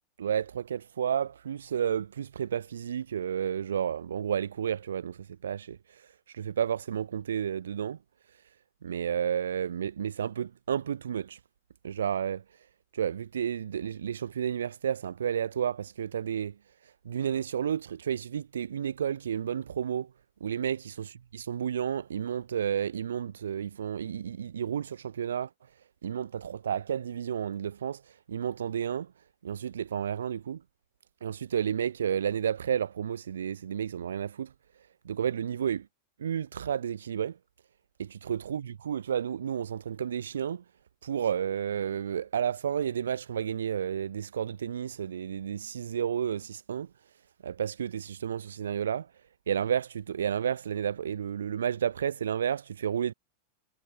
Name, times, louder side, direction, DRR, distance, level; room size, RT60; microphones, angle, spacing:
voice 1, 0.2-8.0 8.8-11.4 11.8-12.4 12.9-16.5 16.8-20.1 20.4-25.5 26.0-29.1 29.4-30.6 31.2-34.5 35.0-35.9 36.2-37.4 38.0-40.6 41.0-46.9 47.4-49.1 49.5-53.1, right 8 dB, 65° right, 0.3 m, -31 dB
figure-of-eight pair, 90°, 0 cm